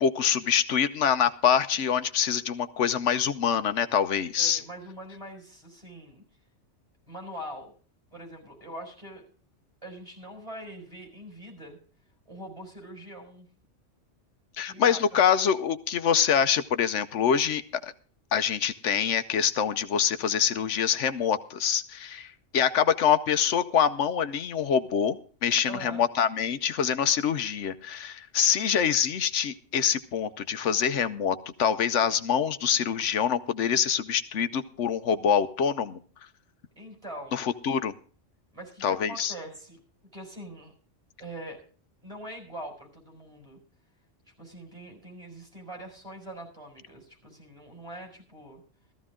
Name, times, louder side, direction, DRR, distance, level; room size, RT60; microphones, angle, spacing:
voice 1, 0.0-4.6 14.6-17.9 18.3-36.0 37.3-37.9 38.8-39.3, left 8 dB, 80° left, 11 dB, 1.1 m, -25 dB
voice 2, 4.4-6.2 7.1-7.7 8.1-9.2 9.8-11.8 12.3-13.5 14.7-15.2 25.7-26.1 36.8-37.4 38.5-39.8 40.1-40.7 41.2-41.6 42.0-43.6 44.4-48.6, right 1 dB, 25° right, 1 dB, 5.7 m, -43 dB
15.0 x 14.5 x 3.7 m, 0.41 s
omnidirectional pair, 1.2 m